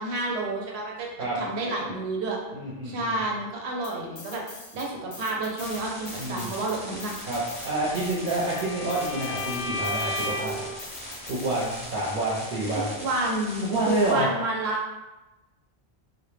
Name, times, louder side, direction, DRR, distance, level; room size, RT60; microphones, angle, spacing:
voice 1, 0.0-1.1 1.4-2.4 2.8-4.4 4.7-7.1 12.8-14.8, right 2 dB, 90° right, -1 dB, 0.8 m, -30 dB
voice 2, 2.5-3.2 6.2-6.5 7.3-10.6 11.3-12.9 13.6-14.3, right 2 dB, 55° right, -7 dB, 0.7 m, -28 dB
sound 1, 3.8-4.9 5.1-11.9, left 3 dB, 60° left, 0.6 m, -44 dB
sound 2, 5.6-14.1, equal, 10° right, 0.6 m, -41 dB
Bowed string instrument, 7.6-10.6, left 2 dB, 90° left, 0.8 m, -34 dB
2.1 x 2.1 x 3.1 m, 1.1 s
omnidirectional pair, 1.1 m